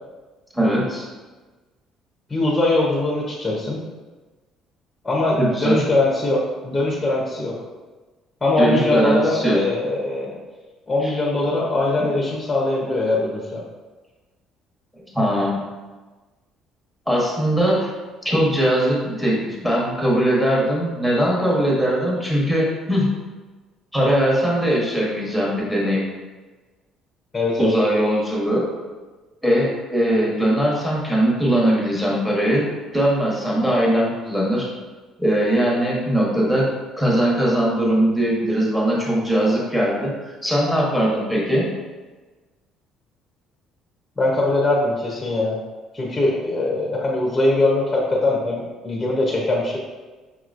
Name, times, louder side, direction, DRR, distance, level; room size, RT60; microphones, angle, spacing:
voice 1, 0.5-1.0 5.4-5.8 8.6-9.6 11.0-11.2 12.0-12.1 14.9-15.6 17.1-17.9 18.2-23.2 23.9-26.0 27.6-28.6 29.4-32.7 32.9-34.7 35.2-36.7 37.0-40.1 40.4-41.7, equal, 5° right, -5 dB, 1.2 m, -20 dB
voice 2, 2.3-3.8 5.0-7.5 8.4-10.3 10.9-13.6 27.3-27.7 44.2-45.6 45.9-49.8, left 2 dB, 15° left, -3 dB, 0.8 m, -21 dB
5.7 x 2.9 x 2.5 m, 1.3 s
cardioid pair, 125°, 0 cm